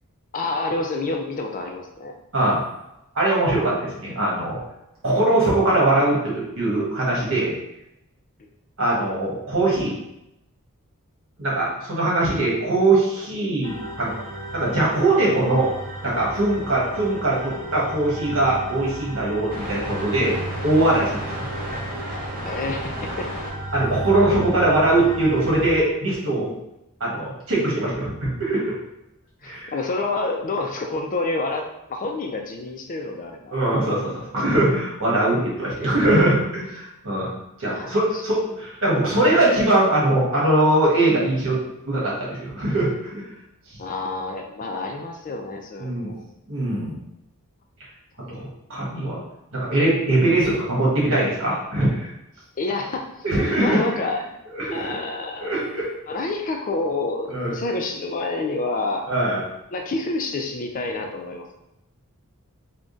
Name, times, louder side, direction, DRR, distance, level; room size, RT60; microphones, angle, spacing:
voice 1, 0.3-2.1 8.4-8.5 22.4-23.3 29.4-31.6 31.9-33.6 37.7-38.2 43.8-46.2 48.2-48.5 52.6-53.3 53.6-54.2 54.7-55.6 56.1-59.1 59.7-61.5, left 3 dB, 35° left, 3 dB, 0.4 m, -28 dB
voice 2, 3.1-4.6 5.0-7.5 8.8-9.9 11.4-14.1 14.5-15.7 16.0-20.3 20.6-21.3 23.7-26.5 27.0-28.7 29.4-29.7 33.5-37.3 37.6-41.6 41.9-43.2 45.8-46.1 46.5-47.0 48.3-49.2 49.5-52.1 53.2-53.8 54.5-54.9 55.4-55.9 57.3-57.5 59.1-59.4, right 2 dB, 60° right, -5 dB, 1.4 m, -21 dB
sound 1, 13.6-25.8, right 1 dB, 40° right, 0.9 m, -32 dB
3.6 x 2.2 x 3.8 m, 0.86 s
head